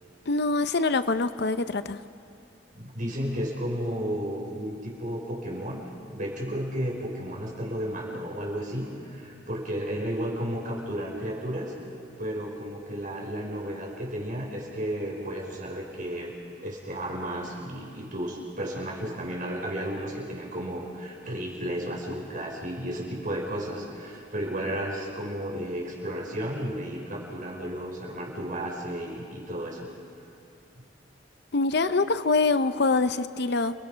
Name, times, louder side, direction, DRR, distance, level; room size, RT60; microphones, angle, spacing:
voice 1, 0.3-2.0 31.5-33.7, left 3 dB, 60° left, 12 dB, 0.7 m, -24 dB
voice 2, 2.7-5.8 6.1-11.7 12.2-16.3 16.6-29.9, equal, 45° right, -2 dB, 5.5 m, -33 dB
29.5 x 20.5 x 5.7 m, 2.6 s
head